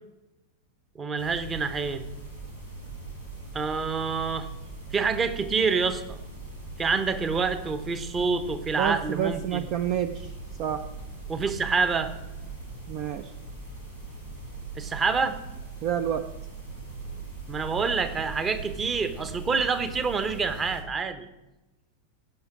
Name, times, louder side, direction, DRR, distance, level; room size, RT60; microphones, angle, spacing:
voice 1, 0.9-2.0 3.5-4.5 4.9-6.2 6.8-9.7 11.3-12.1 14.7-15.4 17.5-21.3, right 5 dB, 20° right, 11 dB, 1.0 m, -27 dB
sound 1, 1.2-20.8, right 3 dB, 85° right, 5.0 m, -40 dB
voice 2, 8.8-10.3 10.6-10.9 12.9-13.3 15.8-16.3, right 10 dB, 40° right, 10 dB, 0.5 m, -28 dB
16.5 x 5.8 x 6.0 m, 1.0 s
figure-of-eight pair, 90°, 0 cm